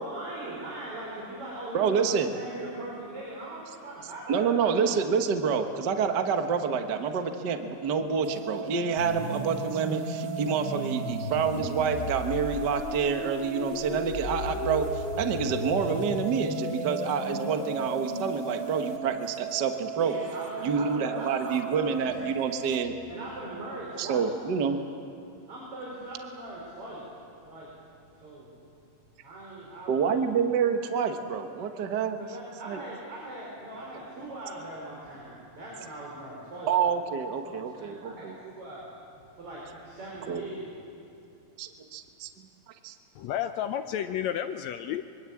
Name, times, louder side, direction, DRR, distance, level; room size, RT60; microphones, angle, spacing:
voice 1, 0.0-4.9 19.9-22.3 23.1-24.2 25.5-27.1 27.5-27.7 28.2-28.5 29.2-30.2 32.2-36.7 37.4-38.8 39.3-40.7, right 1 dB, 40° right, -5 dB, 5.8 m, -40 dB
voice 2, 1.7-2.3 4.3-20.2 20.6-22.9 24.0-24.8 29.9-32.2 32.7-32.8 36.7-38.4 40.3-40.4 41.6-42.3 42.8-42.9, right 6 dB, 70° right, 6 dB, 1.0 m, -28 dB
sound 1, 8.2-22.9, right 10 dB, 85° right, 2.5 m, -39 dB
sound 2, 9.0-19.0, left 2 dB, 35° left, 2.5 m, -35 dB
voice 3, 43.2-45.0, left 10 dB, 80° left, 8 dB, 1.6 m, -31 dB
25.0 x 23.5 x 8.6 m, 2.6 s
omnidirectional pair, 4.0 m